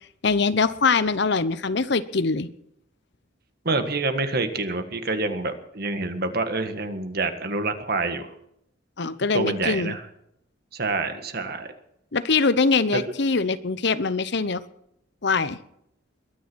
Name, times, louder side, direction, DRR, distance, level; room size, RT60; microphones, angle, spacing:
voice 1, 0.2-2.5 9.0-10.0 12.1-14.6 15.2-15.6, left 4 dB, 60° left, 14 dB, 0.9 m, -23 dB
voice 2, 3.7-8.3 9.3-10.0 10.7-11.7 12.9-13.1, right 3 dB, 50° right, 8 dB, 1.7 m, -27 dB
22.0 x 10.0 x 6.3 m, 0.75 s
head